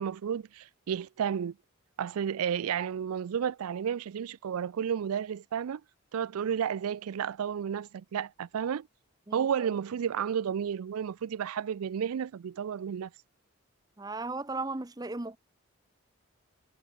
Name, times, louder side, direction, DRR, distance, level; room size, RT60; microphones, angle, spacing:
voice 1, 0.0-1.6 2.0-5.8 6.1-8.9 9.3-13.1, right 8 dB, 90° right, 0.4 m, -32 dB
voice 2, 14.0-15.4, right 3 dB, 20° right, 0.7 m, -35 dB
head